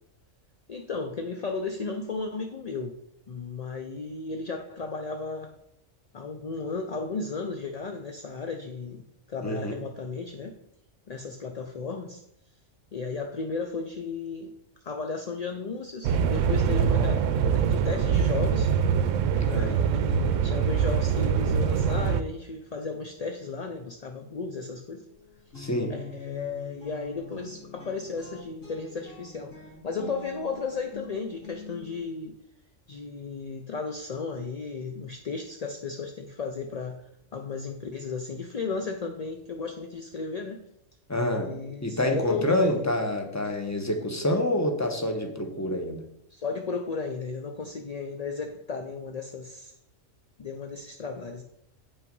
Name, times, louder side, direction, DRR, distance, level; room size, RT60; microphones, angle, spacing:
voice 1, 0.7-2.9 3.3-5.5 6.1-9.0 9.3-10.5 11.1-12.2 12.9-14.5 14.8-17.3 17.5-18.7 19.4-25.0 25.9-32.4 32.9-37.0 37.3-40.6 41.1-42.8 43.4-43.6 46.3-49.7 50.4-51.4, left 4 dB, 45° left, 4 dB, 0.5 m, -34 dB
voice 2, 9.4-9.8 19.4-19.8 25.6-25.9 41.1-41.5 41.8-46.0, left 1 dB, 15° left, 4 dB, 1.1 m, -27 dB
sound 1, 16.0-22.2, right 7 dB, 75° right, 0.9 m, -24 dB
sound 2, 25.1-32.0, left 5 dB, 80° left, 3.5 m, -44 dB
8.3 x 5.6 x 5.4 m, 0.77 s
omnidirectional pair, 1.4 m